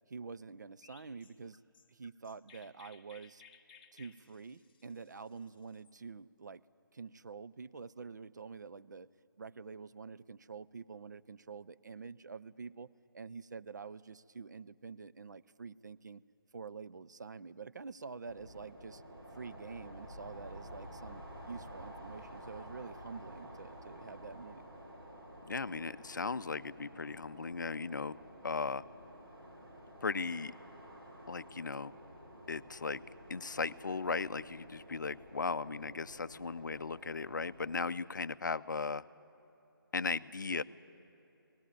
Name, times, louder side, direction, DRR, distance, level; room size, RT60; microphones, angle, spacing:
voice 1, 0.1-1.6 1.9-3.4 3.9-6.6 6.9-9.1 9.4-16.2 16.5-19.0 19.3-24.7, right 5 dB, 50° right, 15 dB, 0.5 m, -47 dB
Chirp tweet, 0.8-6.0, left 6 dB, 25° left, 0.9 m, -61 dB
sound 1, 18.3-37.8, equal, 90° right, 4.9 m, -51 dB
voice 2, 25.5-28.2 28.4-28.8 30.0-30.5 31.3-31.9 32.5-33.0 33.3-39.0 39.9-40.6, left 4 dB, 55° left, 16 dB, 0.5 m, -37 dB
18.5 x 16.5 x 9.6 m, 3.0 s
figure-of-eight pair, 150°, 12 cm